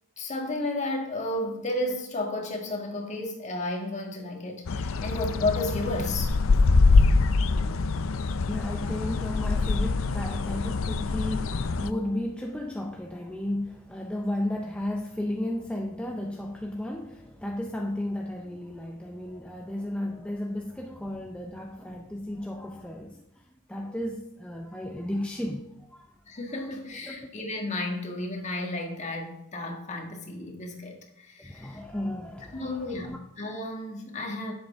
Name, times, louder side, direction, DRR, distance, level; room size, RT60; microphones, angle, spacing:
voice 1, 0.2-6.6 26.3-31.8 32.5-34.5, left 2 dB, 35° left, 1.7 m, -32 dB
sound 1, 4.7-11.9, left 3 dB, 65° left, 0.5 m, -24 dB
voice 2, 8.5-23.2 23.7-25.6 25.9-26.1 27.1-27.3 31.4-32.7 33.0-33.2, left 1 dB, 5° left, 0.5 m, -33 dB
10.5 x 7.8 x 3.5 m
head